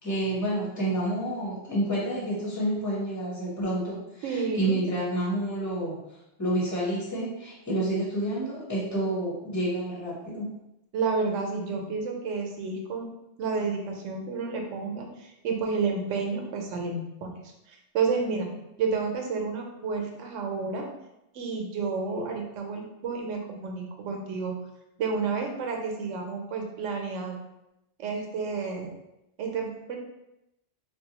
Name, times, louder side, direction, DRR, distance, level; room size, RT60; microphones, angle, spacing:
voice 1, 0.0-6.0 6.4-10.5 22.1-22.2, right 1 dB, 15° left, -6 dB, 0.9 m, -29 dB
voice 2, 4.2-4.8 10.9-13.1 13.4-17.3 17.7-18.5 18.8-20.9 21.3-24.5 25.0-27.4 28.0-28.9 29.4-30.0, right 4 dB, 90° right, 2 dB, 1.0 m, -30 dB
4.1 x 2.1 x 2.9 m, 0.89 s
omnidirectional pair, 1.2 m